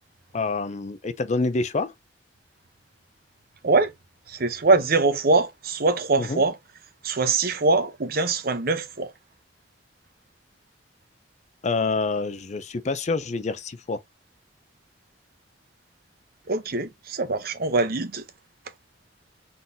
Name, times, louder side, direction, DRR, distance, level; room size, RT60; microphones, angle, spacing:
voice 1, 0.3-1.9 6.2-6.4 11.6-14.0, left 3 dB, 40° left, 0.5 m, -27 dB
voice 2, 4.3-6.5 7.0-9.1 16.5-18.2, right 3 dB, 55° right, 0.8 m, -23 dB
3.9 x 3.8 x 2.6 m
head